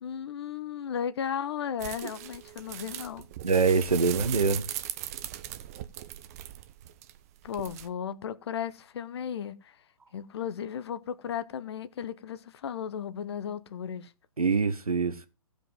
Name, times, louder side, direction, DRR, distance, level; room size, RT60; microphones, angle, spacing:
voice 1, 0.0-3.3 7.4-9.7 10.1-14.1, left 8 dB, 45° left, 0.8 m, -35 dB
sound 1, 1.8-7.9, right 13 dB, 25° right, 0.6 m, -39 dB
voice 2, 3.4-4.6 14.4-15.3, right 4 dB, 75° right, 1.1 m, -24 dB
15.0 x 5.2 x 5.2 m
figure-of-eight pair, 130°, 19 cm